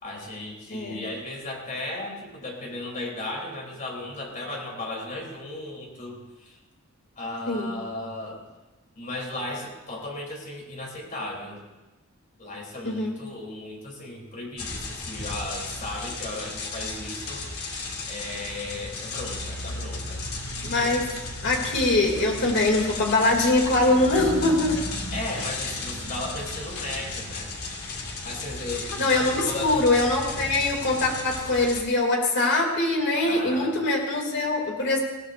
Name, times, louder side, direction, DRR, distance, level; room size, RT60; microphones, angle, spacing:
voice 1, 0.0-6.6 7.2-8.5 9.0-11.6 12.4-17.4 18.1-20.2 25.1-27.5 28.2-29.9 33.2-33.8, left 2 dB, 40° left, -1 dB, 3.5 m, -35 dB
sound 1, 14.6-31.8, left 3 dB, 85° left, 2.3 m, -34 dB
voice 2, 20.6-21.1 21.4-24.8 29.0-35.0, left 2 dB, 55° left, 0 dB, 2.7 m, -23 dB
20.0 x 16.5 x 2.6 m, 1.1 s
head